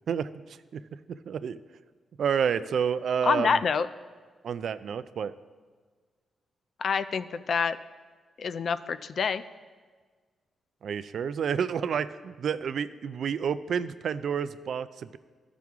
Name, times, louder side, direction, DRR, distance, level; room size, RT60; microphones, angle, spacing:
voice 1, 0.1-0.8 1.1-1.6 2.2-3.6 4.4-5.3 10.8-15.2, right 7 dB, 70° right, 14 dB, 0.3 m, -30 dB
voice 2, 3.2-3.9 6.8-7.8 8.4-9.4, left 5 dB, 60° left, 13 dB, 0.4 m, -27 dB
14.0 x 5.9 x 3.6 m, 1.5 s
cardioid pair, 85°, 0 cm